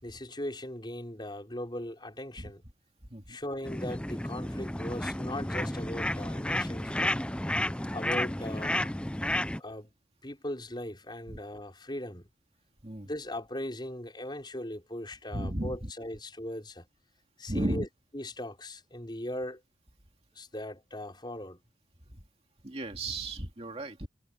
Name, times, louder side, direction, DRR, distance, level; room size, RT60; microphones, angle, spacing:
voice 1, 0.0-2.6 3.3-7.2 7.9-8.9 9.6-9.9 10.2-12.2 13.0-16.9 17.4-17.9 18.1-19.6 20.4-21.6, left 1 dB, 25° left, 5.3 m, -39 dB
sound 1, 3.6-9.6, left 1 dB, 5° left, 0.5 m, -32 dB
voice 2, 15.3-15.9 17.5-17.9 22.1-22.2 22.6-24.1, right 1 dB, 35° right, 2.3 m, -34 dB
head